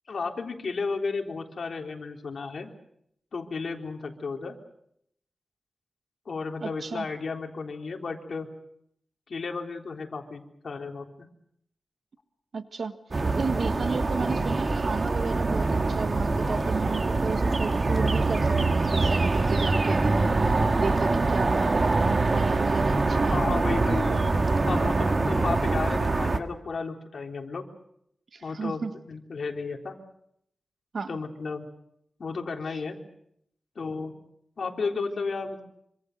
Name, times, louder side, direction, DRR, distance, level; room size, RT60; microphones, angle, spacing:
voice 1, 0.1-2.7 3.3-4.6 6.3-8.5 9.3-11.3 23.3-24.2 24.6-27.7 28.4-30.0 31.1-31.7 32.2-33.0 33.8-34.1 34.6-35.6, left 4 dB, 65° left, 3 dB, 3.6 m, -33 dB
voice 2, 6.6-7.1 12.5-13.0 13.3-23.8 28.3-28.9 30.9-31.2, right 4 dB, 65° right, 9 dB, 1.5 m, -33 dB
sound 1, 13.1-26.4, right 3 dB, 40° right, 1.7 m, -24 dB
26.0 x 26.0 x 6.7 m, 0.72 s
wide cardioid pair, 95°, 0 cm